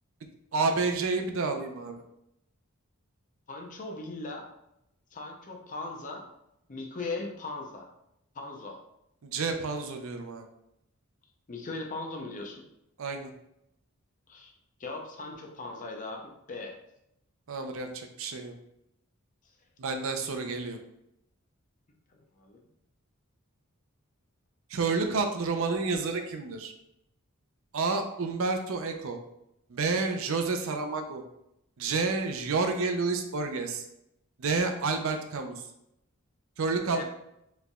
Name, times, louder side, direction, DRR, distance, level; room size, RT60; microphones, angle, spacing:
voice 1, 0.5-2.0 9.2-10.4 13.0-13.3 17.5-18.5 19.8-20.8 24.7-26.7 27.7-29.2 29.7-31.2 31.8-33.8 34.4-35.5 36.6-37.0, right 4 dB, 65° right, 5 dB, 0.5 m, -29 dB
voice 2, 3.5-4.5 5.1-6.2 6.7-7.9 8.3-8.8 11.5-12.6 14.3-14.5 14.8-16.8 22.1-22.6 36.9-37.0, left 3 dB, 35° left, 2 dB, 0.6 m, -39 dB
4.8 x 3.3 x 2.3 m, 0.81 s
head